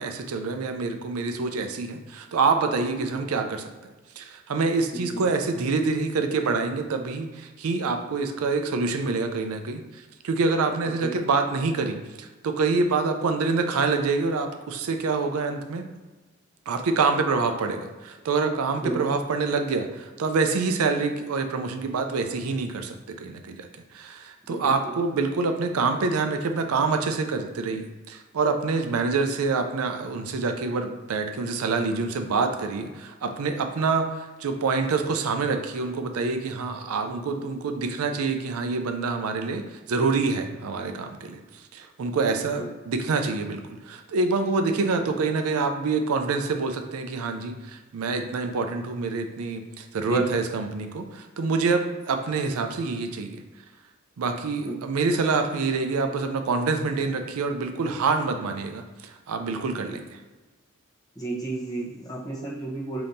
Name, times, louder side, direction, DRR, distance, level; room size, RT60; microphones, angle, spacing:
voice 1, 0.0-3.7 4.2-15.8 16.7-23.7 23.9-41.4 41.7-53.4 54.2-60.0, right 4 dB, 75° right, 6 dB, 0.4 m, -26 dB
voice 2, 4.9-5.3 11.0-11.1 18.8-19.0 24.6-24.7 42.3-42.7 50.1-50.3 54.7-54.8 61.2-63.0, right 2 dB, 15° left, -5 dB, 0.9 m, -32 dB
5.2 x 2.8 x 2.6 m, 1.2 s
head